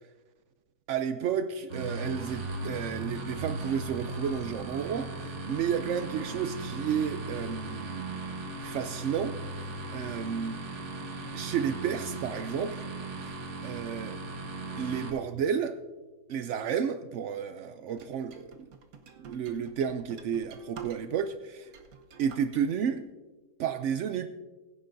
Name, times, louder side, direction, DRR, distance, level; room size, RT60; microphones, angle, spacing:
voice 1, 0.9-8.1 8.6-10.6 11.3-12.8 13.2-13.3 13.6-14.2 14.8-15.8 16.3-18.7 19.2-21.7 22.2-23.0 23.6-24.3, right 7 dB, 80° right, 9 dB, 0.6 m, -32 dB
sound 1, 1.7-15.1, right 2 dB, 45° right, 1.5 m, -37 dB
sound 2, 18.0-21.3 21.6-22.6, right 6 dB, 65° right, 1.4 m, -48 dB
21.0 x 10.0 x 2.6 m, 1.2 s
omnidirectional pair, 1.8 m